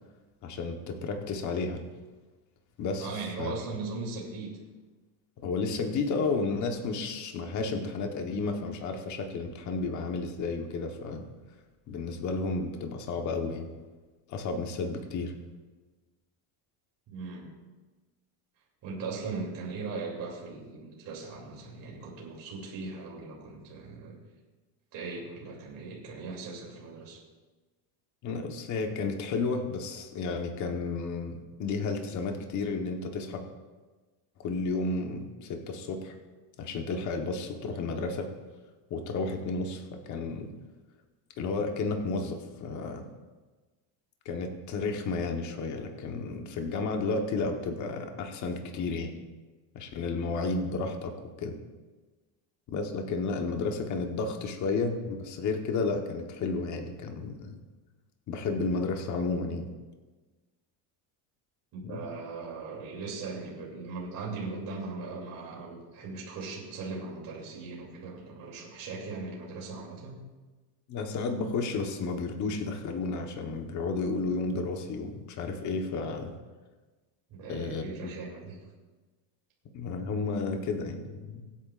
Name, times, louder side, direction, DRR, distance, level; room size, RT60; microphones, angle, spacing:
voice 1, 0.4-1.8 2.8-3.5 5.4-11.2 11.9-13.7 14.3-15.3 28.2-33.4 34.4-36.1 36.6-38.3 38.9-40.5 41.4-43.1 44.2-49.1 49.7-51.5 52.7-57.6 58.3-59.7 61.9-62.0 70.9-76.3 77.5-78.1 79.7-81.4, left 3 dB, 40° left, 4 dB, 1.2 m, -32 dB
voice 2, 3.0-4.5 17.1-17.5 18.8-24.2 24.9-27.2 61.7-70.2 77.3-78.6, right 4 dB, 45° right, -3 dB, 3.0 m, -39 dB
23.5 x 8.9 x 2.5 m, 1.3 s
cardioid pair, 160°, 47 cm